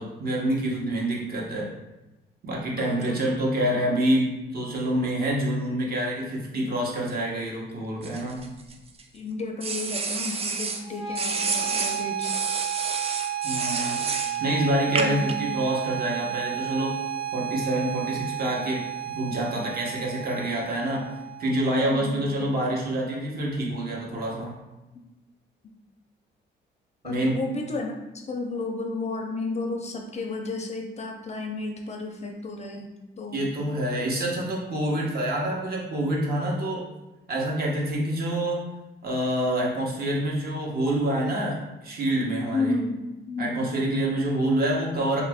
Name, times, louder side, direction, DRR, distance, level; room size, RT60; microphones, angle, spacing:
voice 1, 0.0-1.7 2.4-8.4 13.4-14.0 14.4-17.0 17.3-18.9 19.1-21.1 21.4-24.6 27.0-27.4 33.3-36.8 37.3-38.6 39.0-42.7 43.4-45.2, right 1 dB, 50° right, -3 dB, 1.0 m, -27 dB
voice 2, 2.7-3.2 9.1-12.3 15.0-15.3 20.9-21.0 21.9-22.3 27.0-28.0 28.3-32.9 33.2-33.4 42.5-43.7, left 3 dB, 35° left, 2 dB, 0.5 m, -32 dB
sound 1, 8.0-9.0 9.6-10.8 11.1-14.4 15.0-15.3, right 4 dB, 30° right, 0.4 m, -30 dB
sound 2, 10.8-21.8, right 10 dB, 80° right, 1.2 m, -32 dB
2.9 x 2.4 x 3.4 m, 1.0 s
cardioid pair, 90°, 20 cm